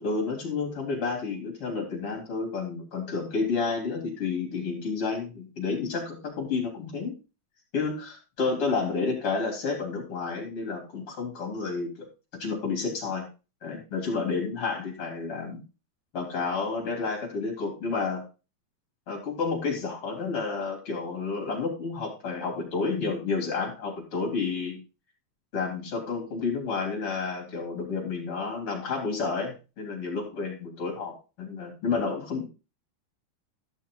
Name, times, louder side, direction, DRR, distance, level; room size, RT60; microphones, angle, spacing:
voice 1, 0.0-7.1 7.7-12.1 12.3-13.3 13.6-15.6 16.1-18.2 19.1-24.8 25.5-32.5, left 4 dB, 30° left, 0 dB, 4.2 m, -30 dB
13.5 x 6.2 x 3.9 m, 0.31 s
omnidirectional pair, 5.3 m